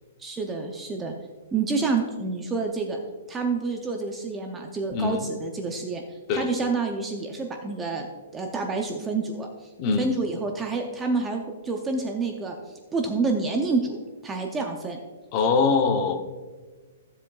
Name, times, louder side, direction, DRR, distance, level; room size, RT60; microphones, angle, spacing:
voice 1, 0.2-1.1 1.5-3.0 3.3-6.0 6.3-9.5 10.0-12.6 12.9-15.0, right 3 dB, 10° right, 2 dB, 0.5 m, -28 dB
voice 2, 4.9-5.2 6.3-6.5 9.8-10.1 15.3-16.3, left 4 dB, 25° left, 6 dB, 0.7 m, -23 dB
15.0 x 7.4 x 2.3 m, 1.4 s
hypercardioid pair, 170°, 0 cm